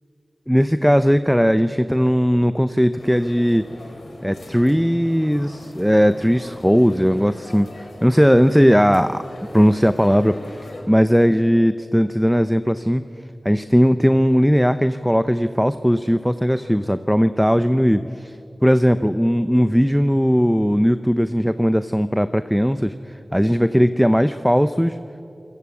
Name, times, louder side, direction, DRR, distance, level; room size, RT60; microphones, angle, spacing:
voice 1, 0.5-3.7 4.2-9.2 9.5-13.0 13.4-18.3 18.6-25.0, equal, ahead, 11 dB, 0.7 m, -18 dB
sound 1, 3.0-10.8, left 2 dB, 85° left, 3.5 m, -40 dB
27.0 x 18.0 x 8.4 m, 2.6 s
cardioid pair, 40°, 0 cm